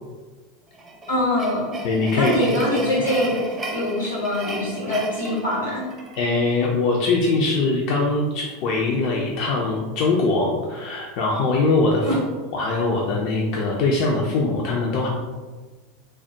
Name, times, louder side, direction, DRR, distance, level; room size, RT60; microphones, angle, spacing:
sound 1, 0.7-6.3, right 1 dB, 25° right, 0.5 m, -34 dB
voice 1, 1.1-1.7 2.2-3.4 3.7-5.9 12.0-12.2, left 1 dB, 85° left, -5 dB, 1.2 m, -23 dB
voice 2, 1.8-2.3 6.2-12.1 12.5-15.1, left 3 dB, 55° left, -2 dB, 0.4 m, -22 dB
3.3 x 2.0 x 2.7 m, 1.4 s
figure-of-eight pair, 80°, 0 cm